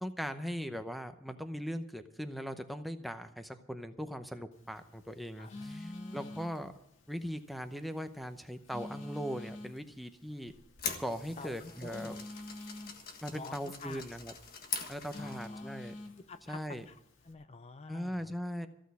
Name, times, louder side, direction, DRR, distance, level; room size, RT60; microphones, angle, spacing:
voice 1, 0.0-6.7 7.1-10.5 11.0-12.2 13.2-14.3 14.9-16.0 16.5-16.8 17.9-18.7, equal, ahead, 7 dB, 0.7 m, -39 dB
Telephone, 4.5-17.3, left 1 dB, 90° left, 1.8 m, -49 dB
voice 2, 5.4-6.4 11.4-12.2 13.3-14.0 14.8-15.8 16.2-18.3, left 3 dB, 30° left, 10 dB, 0.5 m, -49 dB
sound 1, 10.5-15.6, left 5 dB, 50° left, 1.6 m, -43 dB
15.0 x 6.3 x 9.4 m, 0.80 s
head